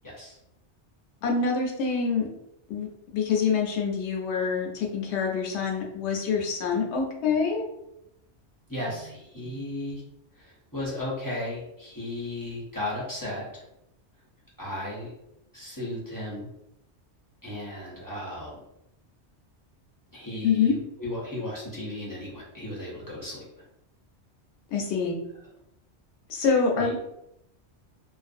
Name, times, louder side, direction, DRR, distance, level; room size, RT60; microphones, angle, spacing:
voice 1, 0.0-0.4 8.7-10.0 10.4-13.6 14.6-15.1 15.5-16.5 17.4-18.6 20.1-23.5 26.8-26.9, left 1 dB, 25° left, -7 dB, 0.5 m, -35 dB
voice 2, 1.2-2.3 2.7-2.9 3.1-7.7 20.4-20.7 24.7-25.1 26.3-27.0, left 5 dB, 75° left, 0 dB, 0.9 m, -26 dB
2.4 x 2.2 x 2.5 m, 0.82 s
omnidirectional pair, 1.2 m